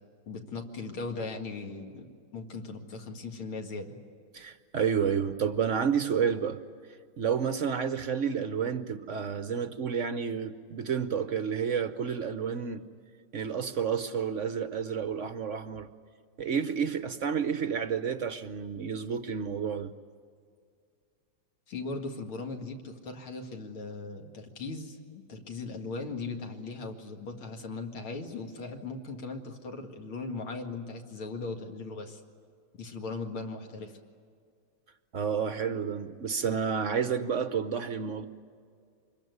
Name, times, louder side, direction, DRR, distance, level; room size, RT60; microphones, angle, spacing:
voice 1, 0.3-4.0 21.7-32.2 32.7-34.0, left 3 dB, 85° left, 3 dB, 2.9 m, -38 dB
voice 2, 4.3-6.6 7.2-12.8 13.3-15.9 16.4-19.9 35.1-38.3, right 7 dB, 60° right, 11 dB, 0.8 m, -30 dB
25.5 x 22.0 x 9.5 m, 2.2 s
omnidirectional pair, 2.3 m